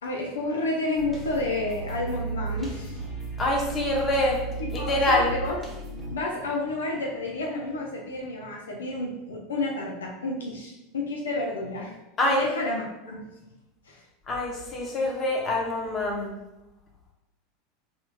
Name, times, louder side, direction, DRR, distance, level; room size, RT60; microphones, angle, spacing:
voice 1, 0.0-3.0 4.6-5.6 6.1-12.0 12.3-13.3 13.8-14.0, left 2 dB, 80° left, -1 dB, 0.5 m, -30 dB
sound 1, 1.0-6.2, right 3 dB, 5° right, 1.2 m, -35 dB
voice 2, 3.4-4.4 4.7-5.3 12.2-12.5 14.3-16.3, left 1 dB, 30° left, -1 dB, 1.0 m, -25 dB
4.1 x 3.0 x 2.3 m, 1.0 s
figure-of-eight pair, 85°, 0 cm